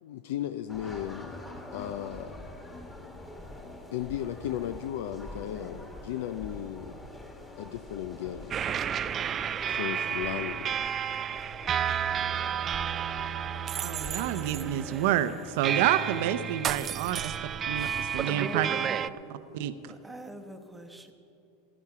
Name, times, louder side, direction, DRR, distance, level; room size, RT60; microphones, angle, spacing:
voice 1, 0.0-1.4 1.7-2.4 3.9-7.1 7.6-8.6 9.7-10.9 17.0-17.4, left 11 dB, 75° left, 10 dB, 0.5 m, -36 dB
sound 1, 0.7-15.1, left 1 dB, 10° left, 1.8 m, -45 dB
sound 2, 8.5-19.1, right 8 dB, 30° right, 0.3 m, -31 dB
voice 2, 13.8-17.3 17.6-18.7 19.5-19.7, right 11 dB, 65° right, 12 dB, 0.6 m, -28 dB
voice 3, 17.8-19.1 19.9-21.1, equal, 5° right, 5 dB, 1.0 m, -43 dB
16.0 x 12.0 x 4.9 m, 2.8 s
supercardioid pair, 130°, 0 cm